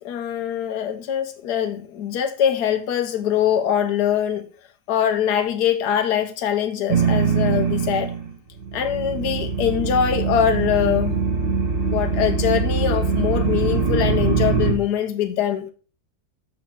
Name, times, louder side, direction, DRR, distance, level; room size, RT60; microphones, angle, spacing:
voice 1, 0.0-4.5 4.9-8.1 8.7-11.2 11.9-15.7, left 9 dB, 80° left, 1.3 m, -23 dB
sound 1, 6.9-8.3 8.6-14.7, right 5 dB, 50° right, 2.2 m, -22 dB
6.1 x 4.5 x 5.9 m
omnidirectional pair, 1.7 m